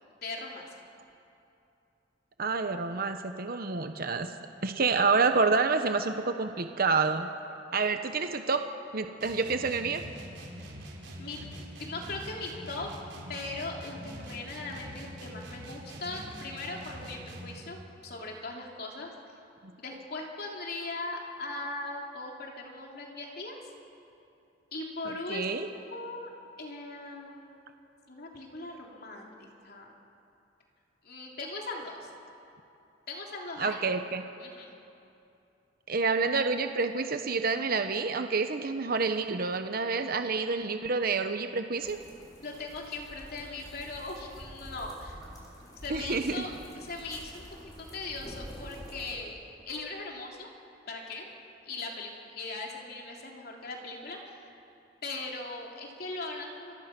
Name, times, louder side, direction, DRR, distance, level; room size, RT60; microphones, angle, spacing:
voice 1, 0.2-0.7 11.2-11.4 11.8-12.9 13.3-19.1 19.8-23.6 24.7-26.3 26.6-27.7 28.1-29.9 31.0-32.1 33.1-33.8 34.4-34.7 42.4-45.2 45.6-49.4 49.7-50.5 50.9-51.3 51.6-54.6 55.0-56.7, left 2 dB, 60° left, 0 dB, 3.3 m, -39 dB
voice 2, 2.4-4.3 4.6-7.3 7.7-8.6 8.9-10.0 19.6-19.7 25.0-25.7 33.6-34.2 35.9-42.0 45.9-46.5, right 4 dB, 55° right, 7 dB, 1.0 m, -28 dB
sound 1, 9.2-17.7, equal, 80° right, 4.7 m, -44 dB
sound 2, 41.8-49.2, equal, 20° left, 5.2 m, -47 dB
29.0 x 24.0 x 6.1 m, 2.8 s
head